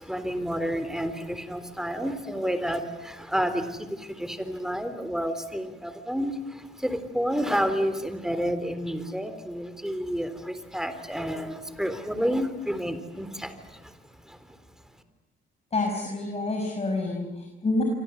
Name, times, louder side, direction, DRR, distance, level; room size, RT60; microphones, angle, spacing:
voice 1, 0.0-14.0 14.3-14.4, equal, ahead, 10 dB, 3.7 m, -30 dB
voice 2, 15.7-17.8, left 2 dB, 30° left, 2 dB, 6.1 m, -28 dB
28.0 x 25.0 x 8.2 m, 1.0 s
cardioid pair, 90°, 20 cm